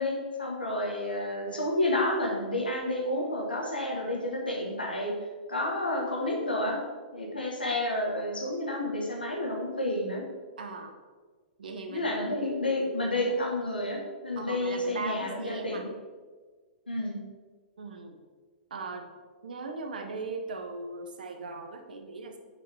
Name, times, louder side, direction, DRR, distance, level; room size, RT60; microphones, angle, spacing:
voice 1, 0.0-5.1 5.5-6.8 7.1-10.2 11.9-15.9 16.9-17.2, left 1 dB, 85° left, -1 dB, 1.7 m, -30 dB
voice 2, 10.6-11.0 11.6-12.1 14.3-15.8 17.8-18.2 18.7-19.1 19.4-22.4, right 3 dB, 65° right, 5 dB, 1.0 m, -38 dB
6.3 x 5.7 x 4.5 m, 1.4 s
figure-of-eight pair, 105°, 5 cm